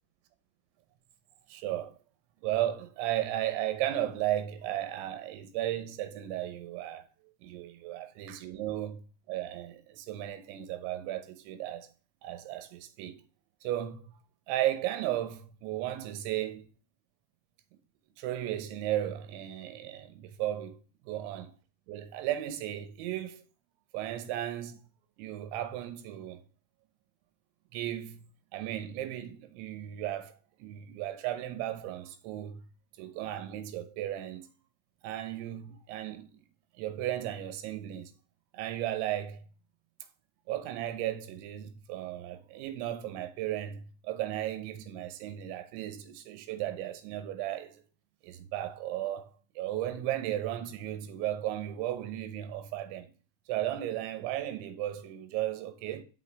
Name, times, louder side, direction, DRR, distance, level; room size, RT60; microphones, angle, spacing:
voice 1, 1.5-2.0 2.4-7.0 7.4-9.0 9.3-11.9 12.2-13.2 13.6-14.2 14.5-16.7 18.2-20.8 21.0-21.5 21.9-23.4 23.9-24.8 25.2-26.4 27.7-28.3 28.5-32.6 33.0-34.5 35.0-36.4 36.8-38.1 38.5-39.4 40.5-47.8 48.2-53.1 53.5-56.0, right 13 dB, 90° right, 3.3 m, -35 dB
6.4 x 5.7 x 4.6 m
omnidirectional pair, 5.2 m